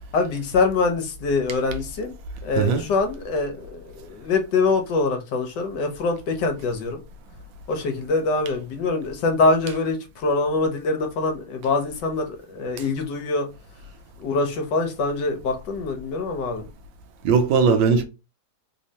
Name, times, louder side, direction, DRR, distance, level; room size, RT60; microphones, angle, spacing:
voice 1, 0.1-2.1 2.4-7.0 7.7-13.5 14.2-16.6, left 3 dB, 70° left, 1.3 m, -24 dB
voice 2, 2.6-2.9 17.2-18.0, right 5 dB, 80° right, 1.3 m, -18 dB
3.5 x 3.1 x 2.7 m
omnidirectional pair, 2.1 m